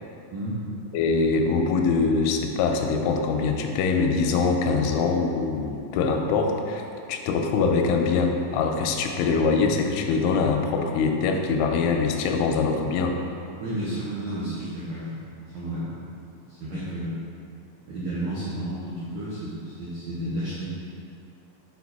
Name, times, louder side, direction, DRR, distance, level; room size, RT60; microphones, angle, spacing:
voice 1, 0.3-0.6 13.6-16.0 16.4-17.2 17.8-20.7, right 1 dB, 85° right, -9 dB, 1.7 m, -32 dB
voice 2, 0.9-6.8 7.1-13.2, left 4 dB, 90° left, 3 dB, 3.0 m, -23 dB
7.1 x 4.7 x 4.2 m, 2.5 s
omnidirectional pair, 5.3 m